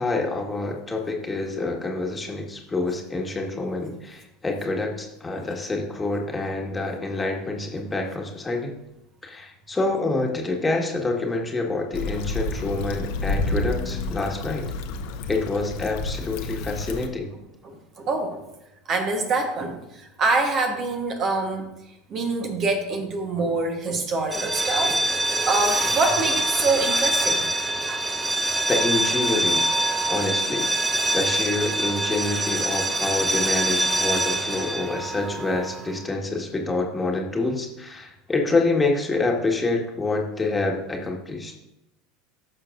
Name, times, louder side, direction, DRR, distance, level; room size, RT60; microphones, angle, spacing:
voice 1, 0.0-8.7 9.2-14.6 15.3-17.3 28.7-29.7 30.1-30.6 31.1-41.5, left 2 dB, 15° left, 1 dB, 1.6 m, -27 dB
Stream / Traffic noise roadway noise / Trickle dribble, 11.9-17.1, left 2 dB, 60° left, 0.8 m, -30 dB
voice 2, 17.6-18.4 18.9-19.8 20.2-21.7 22.1-25.0 25.3-27.5 27.7-28.3 30.2-30.3, right 3 dB, 40° right, 4 dB, 1.2 m, -25 dB
sound 1, 24.2-35.9, right 1 dB, 10° right, 0.7 m, -25 dB
15.5 x 6.7 x 2.6 m, 0.91 s
figure-of-eight pair, 75°, 0 cm